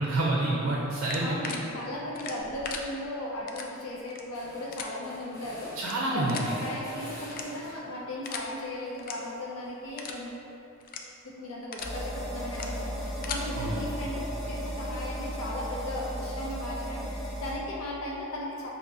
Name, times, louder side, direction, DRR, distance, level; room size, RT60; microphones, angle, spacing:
voice 1, 0.0-1.5 5.8-6.4 13.6-13.8, right 2 dB, 75° right, -4 dB, 0.5 m, -28 dB
sound 1, 1.0-1.6 2.1-2.8 3.5-3.7 4.0-4.2 4.7-4.9 5.8-5.9 6.3-6.5 7.3-7.7 8.2-8.5 8.9-9.1 9.5-9.6 10.0-10.2 10.8-11.0 11.5-11.9 12.5-12.7 13.0-13.4, left 6 dB, 40° left, 0.3 m, -38 dB
voice 2, 1.2-5.7 6.1-10.5 11.2-14.2 14.5-18.7, left 1 dB, 80° left, -5 dB, 0.6 m, -36 dB
sound 2, 2.4-2.9 3.3-3.4 3.6-8.0 8.4-10.5, equal, 15° left, 1.3 m, -49 dB
sound 3, 11.8-17.5, equal, ahead, 0.9 m, -35 dB
6.1 x 2.8 x 2.6 m, 2.9 s
head